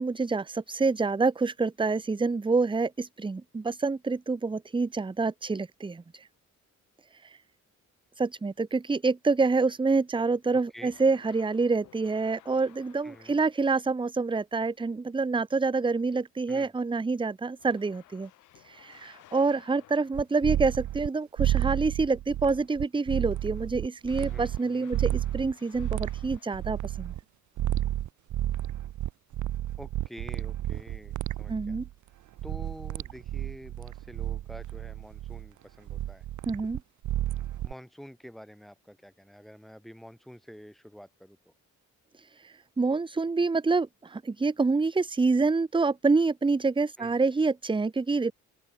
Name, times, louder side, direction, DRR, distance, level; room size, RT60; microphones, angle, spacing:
voice 1, 0.0-6.3 7.1-7.4 8.2-18.3 18.5-27.1 31.5-31.9 36.5-36.8 42.2-48.3, right 4 dB, 15° right, 0.8 m, -27 dB
sound 1, 10.9-13.8 17.6-20.5 24.0-27.1, left 15 dB, 90° left, 4.6 m, -57 dB
voice 2, 13.0-13.4 16.5-16.7 24.1-24.9 29.8-31.8 32.4-36.2 37.6-41.5 47.0-47.2, equal, ahead, 5.6 m, -48 dB
sound 2, 20.1-21.1 21.4-24.6 24.9-27.2 27.6-31.9 32.4-35.5 35.9-37.7, right 13 dB, 75° right, 1.4 m, -31 dB
open air
cardioid pair, 90°, 30 cm